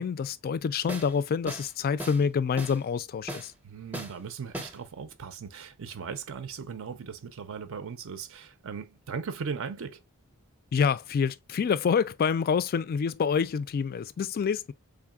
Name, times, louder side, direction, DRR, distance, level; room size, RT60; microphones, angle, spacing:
voice 1, 0.0-3.5 10.7-14.7, left 6 dB, 40° left, 0.3 m, -27 dB
sound 1, 0.9-1.1 1.5-1.7 2.0-2.2 2.6-2.8 3.3-3.5 3.9-4.1 4.5-4.8, right 1 dB, 5° right, 0.6 m, -37 dB
voice 2, 3.6-10.0, right 6 dB, 60° right, 0.5 m, -38 dB
3.7 x 3.5 x 2.3 m
head